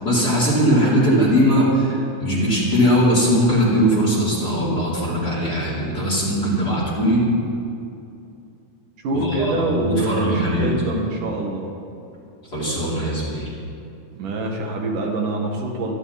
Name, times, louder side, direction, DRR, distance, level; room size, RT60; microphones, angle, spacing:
voice 1, 0.0-7.2 9.1-10.8 12.5-13.5, equal, 30° left, -7 dB, 4.3 m, -20 dB
voice 2, 9.0-11.7 14.1-15.9, right 2 dB, 75° right, 0 dB, 3.4 m, -25 dB
25.5 x 12.0 x 4.2 m, 2.6 s
omnidirectional pair, 3.7 m